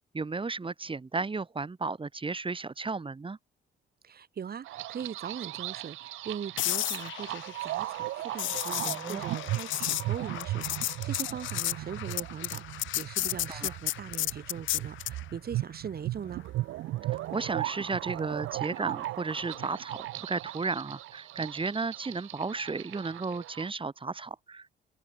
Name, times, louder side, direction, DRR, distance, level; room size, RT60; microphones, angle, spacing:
voice 1, 0.1-3.4 8.8-9.2 13.5-13.7 17.3-24.7, right 4 dB, 25° right, 3.2 m, -34 dB
voice 2, 4.0-16.4, right 7 dB, 50° right, 4.0 m, -40 dB
sound 1, 4.6-23.7, right 16 dB, 85° right, 1.1 m, -37 dB
sound 2, 6.6-15.2 19.4-19.6, left 15 dB, 75° left, 0.7 m, -33 dB
cardioid pair, 90°, 20 cm